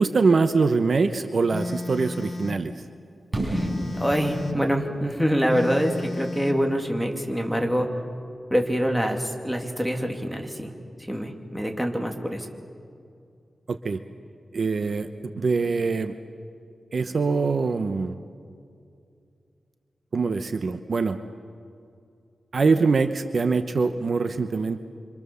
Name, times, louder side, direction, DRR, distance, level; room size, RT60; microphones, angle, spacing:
voice 1, 0.0-2.7 13.7-14.0 14.5-15.1 15.3-16.1 16.9-18.2 20.1-21.2 22.5-24.8, right 4 dB, 55° right, 9 dB, 0.9 m, -23 dB
Telephone, 1.5-2.7 3.5-4.7 5.5-6.7, left 2 dB, 45° left, 1.6 m, -33 dB
Fireworks, 3.3-7.2, right 1 dB, 35° right, 6.5 m, -33 dB
voice 2, 3.9-7.9 8.5-10.7 11.1-12.5, equal, 5° right, 2 dB, 2.7 m, -25 dB
26.5 x 25.5 x 7.0 m, 2.4 s
wide cardioid pair, 120°, 0 cm